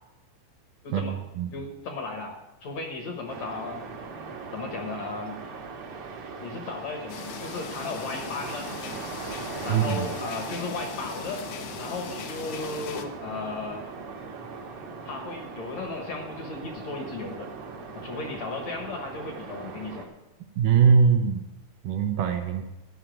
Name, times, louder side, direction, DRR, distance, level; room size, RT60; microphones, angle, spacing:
voice 1, 0.8-1.2 1.5-3.8 4.5-5.4 6.4-8.7 9.6-11.4 11.8-13.9 15.1-17.5 17.9-20.0, left 3 dB, 60° left, 3 dB, 2.1 m, -35 dB
sound 1, 3.3-20.1, right 4 dB, 55° right, 1.7 m, -40 dB
sound 2, 7.1-13.0, left 8 dB, 75° left, 1.6 m, -39 dB
voice 2, 9.7-10.1 20.6-21.5 21.8-22.7, right 6 dB, 75° right, 5 dB, 2.2 m, -21 dB
12.0 x 5.7 x 9.0 m, 1.0 s
omnidirectional pair, 4.2 m